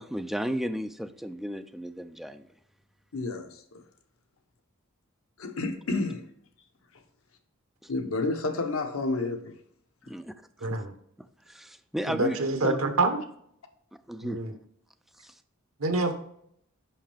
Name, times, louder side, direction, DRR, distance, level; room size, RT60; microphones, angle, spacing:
voice 1, 0.0-2.4 7.8-7.9 10.1-10.3 10.7-10.8 11.5-12.8 14.1-14.4 15.2-15.3, equal, ahead, 0.3 m, -34 dB
voice 2, 3.1-3.8 5.4-6.2 7.9-9.5, left 3 dB, 80° left, 0.9 m, -30 dB
voice 3, 10.6-10.9 12.1-13.2 14.2-14.5 15.8-16.1, right 2 dB, 85° right, 1.0 m, -26 dB
5.7 x 5.4 x 3.4 m
head